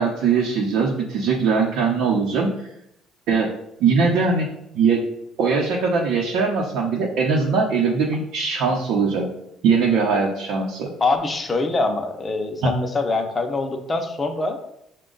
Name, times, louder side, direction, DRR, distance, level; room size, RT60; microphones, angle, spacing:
voice 1, 0.0-2.7 3.3-3.5 3.8-4.5 4.7-5.1 5.4-9.3 9.6-10.9 12.6-12.7, right 5 dB, 80° right, -2 dB, 0.7 m, -21 dB
voice 2, 11.0-14.6, left 3 dB, 20° left, 4 dB, 0.6 m, -24 dB
6.0 x 2.2 x 3.8 m, 0.77 s
cardioid pair, 135°, 0 cm